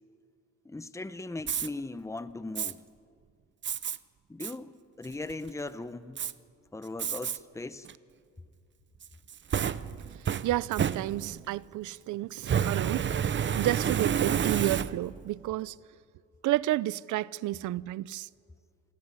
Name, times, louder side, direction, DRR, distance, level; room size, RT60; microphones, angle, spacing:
voice 1, 0.6-2.8 4.3-6.2 6.7-7.9, left 2 dB, 10° left, 0.9 m, -39 dB
Fire, 1.4-1.7 2.6-2.7 3.6-4.0 4.4-4.5 5.0-5.5 6.2-6.3 7.0-7.4 7.9-8.0 9.0-11.5 12.4-15.2, right 8 dB, 40° right, 0.7 m, -30 dB
voice 2, 10.4-13.1 13.6-15.8 16.4-18.3, right 16 dB, 80° right, 0.6 m, -31 dB
27.0 x 16.0 x 9.8 m
cardioid pair, 90°, 30 cm